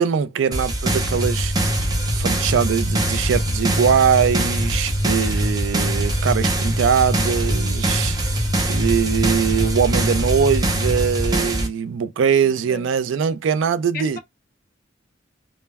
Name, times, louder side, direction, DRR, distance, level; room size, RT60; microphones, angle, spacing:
voice 1, 0.0-1.5 2.1-14.2, right 7 dB, 80° right, 0.3 m, -21 dB
sound 1, 0.5-11.7, right 1 dB, 20° right, 0.5 m, -24 dB
sound 2, 0.8-11.3, equal, 55° right, 0.9 m, -26 dB
voice 2, 12.4-12.9 13.9-14.2, left 5 dB, 50° left, 0.5 m, -35 dB
2.1 x 2.1 x 3.3 m
head